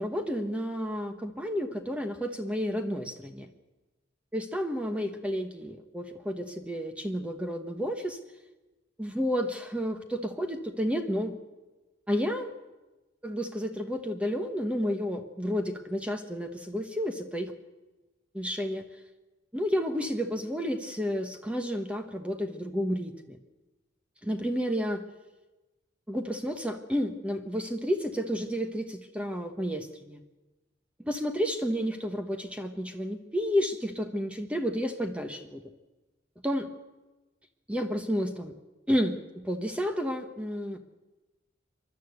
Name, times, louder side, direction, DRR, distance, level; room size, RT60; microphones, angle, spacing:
voice 1, 0.0-3.5 4.3-8.2 9.0-11.4 12.1-12.5 13.2-17.5 18.3-18.8 19.5-23.4 24.2-25.0 26.1-30.2 31.0-35.6 36.4-36.7 37.7-38.5 38.9-40.8, equal, 5° right, 6 dB, 1.1 m, -31 dB
28.0 x 12.0 x 8.0 m, 1.1 s
head